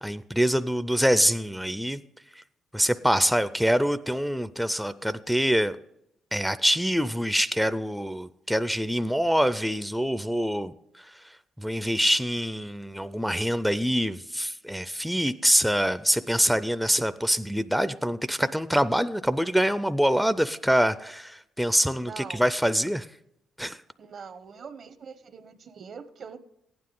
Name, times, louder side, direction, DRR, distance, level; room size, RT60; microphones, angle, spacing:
voice 1, 0.0-2.0 2.7-5.8 6.3-23.1 23.6-23.8, equal, ahead, 12 dB, 0.4 m, -25 dB
voice 2, 22.0-22.4 24.0-26.4, right 6 dB, 55° right, 14 dB, 0.7 m, -43 dB
15.0 x 9.6 x 3.8 m, 0.81 s
cardioid pair, 75°, 0 cm